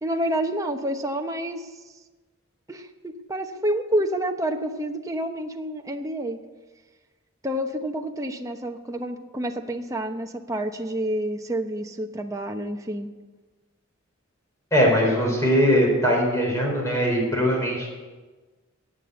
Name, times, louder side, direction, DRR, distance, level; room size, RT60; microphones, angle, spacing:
voice 1, 0.0-1.6 2.7-6.4 7.4-13.1, right 1 dB, 15° right, 4 dB, 0.9 m, -28 dB
voice 2, 14.7-17.9, equal, 15° left, -2 dB, 4.7 m, -21 dB
14.0 x 8.7 x 8.0 m, 1.3 s
head